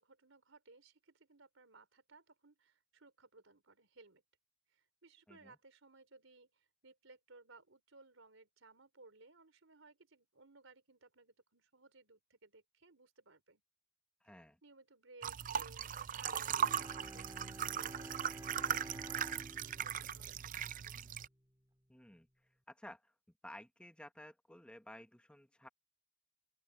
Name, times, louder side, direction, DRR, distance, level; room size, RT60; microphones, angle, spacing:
voice 1, 0.0-4.2 4.7-13.6 14.6-20.8, right 3 dB, 85° right, 3.7 m, -62 dB
voice 2, 14.2-14.6 21.9-22.3 22.7-23.1 23.4-25.7, left 1 dB, 5° left, 1.2 m, -54 dB
sound 1, 15.2-21.3, right 9 dB, 45° right, 0.5 m, -38 dB
Bowed string instrument, 16.5-21.4, right 1 dB, 15° right, 2.1 m, -52 dB
open air
head